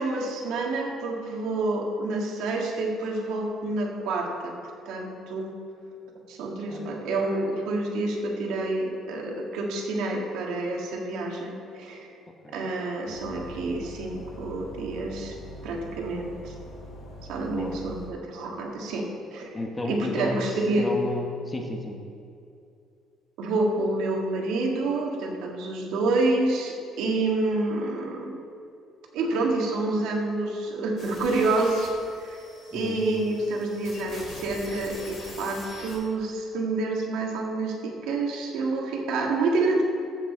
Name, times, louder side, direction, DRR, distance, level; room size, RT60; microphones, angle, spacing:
voice 1, 0.0-4.5 4.9-5.5 6.3-12.1 12.5-15.3 15.6-16.5 17.3-19.0 19.3-19.5 19.9-20.8 23.4-28.3 29.1-31.9 32.2-32.4 32.7-39.8, right 2 dB, 75° right, 0 dB, 1.8 m, -28 dB
sound 1, 13.0-18.1, equal, 65° left, 2.7 m, -43 dB
voice 2, 17.5-17.8 19.5-22.0 32.7-33.0, left 2 dB, 15° left, 2 dB, 0.9 m, -33 dB
sound 2, 31.0-36.0, left 2 dB, 40° left, 2.4 m, -44 dB
14.5 x 6.0 x 4.4 m, 2.6 s
cardioid pair, 165°, 0 cm